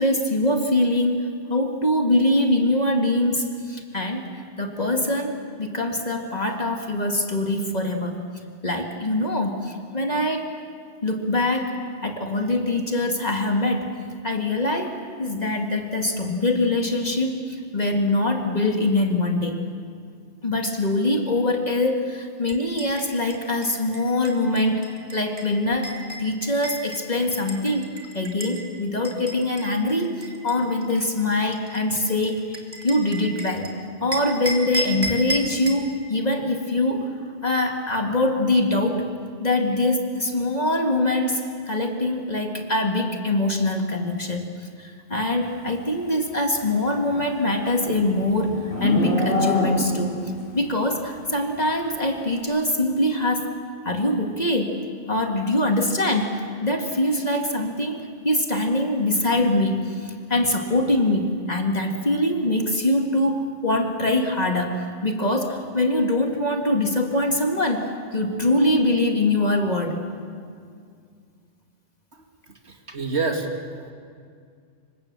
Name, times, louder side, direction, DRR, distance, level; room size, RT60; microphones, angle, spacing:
voice 1, 0.0-8.2 8.6-10.5 11.0-13.9 14.2-19.6 20.4-24.8 25.1-27.9 28.1-33.7 34.0-37.1 37.4-39.1 39.4-44.4 44.8-53.5 53.8-54.8 55.1-70.0, left 1 dB, 35° left, 3 dB, 2.1 m, -23 dB
sound 1, 22.5-28.6 29.0-33.7 34.1-35.9, equal, 20° right, 2.9 m, -34 dB
Livestock farm animals working animals, 46.9-50.1, left 1 dB, 65° left, 7.3 m, -26 dB
voice 2, 72.5-73.5, right 4 dB, 65° right, 2 dB, 2.6 m, -27 dB
26.5 x 24.5 x 7.4 m, 2.2 s
omnidirectional pair, 1.2 m